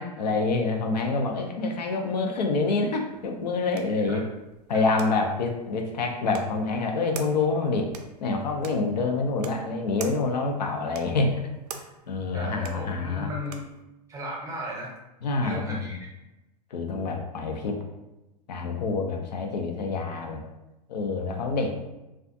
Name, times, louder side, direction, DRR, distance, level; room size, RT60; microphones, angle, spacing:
voice 1, 0.0-4.2 4.7-7.9 8.2-11.5 11.7-13.3 15.2-16.0 16.7-17.8 18.5-20.4 20.9-21.7, left 3 dB, 80° left, 3 dB, 0.5 m, -27 dB
sound 1, 3.1-13.8, right 7 dB, 70° right, 0.4 m, -46 dB
voice 2, 12.3-13.6 14.1-14.9 15.4-16.0, equal, 15° right, -3 dB, 0.7 m, -36 dB
2.4 x 2.3 x 2.5 m, 0.98 s
hypercardioid pair, 100°, 21 cm